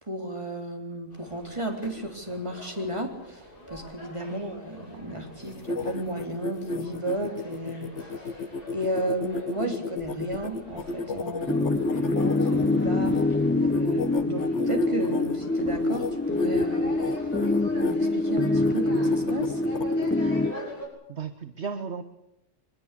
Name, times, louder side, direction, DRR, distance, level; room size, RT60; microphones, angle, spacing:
voice 1, 0.0-13.2 13.6-16.9 17.2-17.4 17.8-19.6, right 1 dB, 20° right, 3 dB, 3.9 m, -34 dB
sound 1, 1.1-20.9, left 1 dB, 30° left, 7.5 m, -44 dB
sound 2, 5.4-13.2 13.7-15.4 15.8-16.1 16.4-16.7 17.0-17.9 18.4-20.1, left 3 dB, 65° left, 1.6 m, -32 dB
sound 3, 11.5-20.5, left 2 dB, 10° left, 0.6 m, -25 dB
voice 2, 21.1-22.0, right 5 dB, 55° right, 9 dB, 1.4 m, -35 dB
23.5 x 21.5 x 8.5 m, 0.81 s
omnidirectional pair, 1.3 m